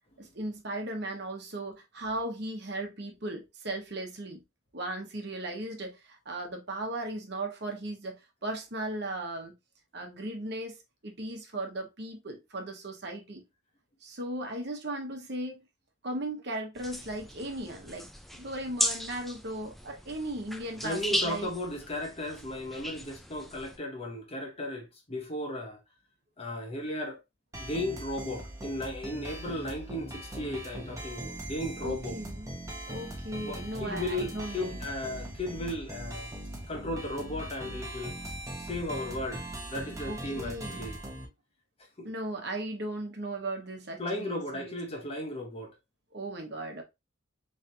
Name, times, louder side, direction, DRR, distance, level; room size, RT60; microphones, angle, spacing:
voice 1, 0.2-4.4 4.7-9.5 9.9-10.8 11.0-13.4 14.0-15.6 16.0-18.1 18.3-21.5 31.8-32.5 32.9-34.8 40.1-40.9 42.0-44.8 46.1-46.8, right 1 dB, 55° right, 1.0 m, -37 dB
sound 1, 16.8-23.8, equal, ahead, 0.4 m, -36 dB
voice 2, 20.8-25.8 26.4-27.2 27.6-32.2 33.4-36.3 36.7-38.2 38.6-39.4 39.7-41.0 42.0-42.1 44.0-45.8, left 1 dB, 30° left, 0.9 m, -35 dB
sound 2, 27.5-41.3, right 1 dB, 15° right, 0.9 m, -40 dB
4.0 x 3.3 x 2.7 m
head